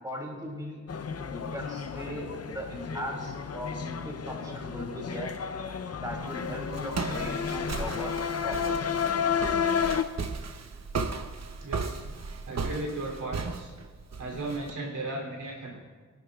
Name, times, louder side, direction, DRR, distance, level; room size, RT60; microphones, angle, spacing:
voice 1, 0.0-0.8 1.2-5.3 6.0-8.1 8.4-8.9, equal, 10° right, -2 dB, 3.0 m, -38 dB
sound 1, 0.9-10.0, left 7 dB, 50° left, 0.7 m, -32 dB
Walk footsteps, 6.1-14.7, right 4 dB, 60° right, 0.8 m, -36 dB
voice 2, 11.6-12.2 12.4-13.7 14.2-15.8, right 2 dB, 85° right, -1 dB, 3.3 m, -36 dB
23.5 x 11.0 x 2.4 m, 1.5 s
wide cardioid pair, 110°, 31 cm